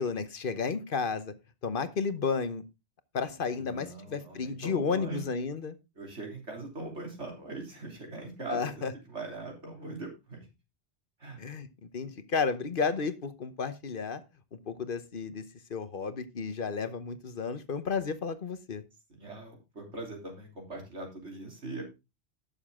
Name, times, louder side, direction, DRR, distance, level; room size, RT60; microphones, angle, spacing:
voice 1, 0.0-1.3 1.6-2.6 3.1-5.8 8.5-8.9 11.4-14.2 14.7-15.4 15.7-18.8, left 5 dB, 50° left, 11 dB, 1.1 m, -32 dB
voice 2, 3.5-5.3 6.0-10.5 11.2-11.4 19.1-21.8, right 2 dB, 80° right, 1 dB, 3.7 m, -41 dB
11.5 x 7.2 x 3.6 m, 0.25 s
omnidirectional pair, 1.2 m